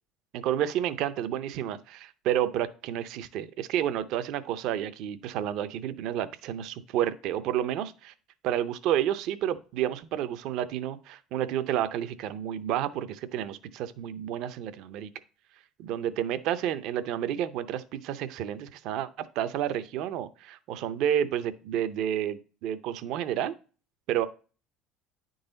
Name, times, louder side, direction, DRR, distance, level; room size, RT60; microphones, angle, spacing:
voice 1, 0.3-8.1 8.4-15.1 15.8-19.1 19.4-23.5 24.1-24.3, right 10 dB, 65° right, 13 dB, 0.5 m, -30 dB
9.6 x 3.9 x 3.9 m, 0.37 s
cardioid pair, 135°, 0 cm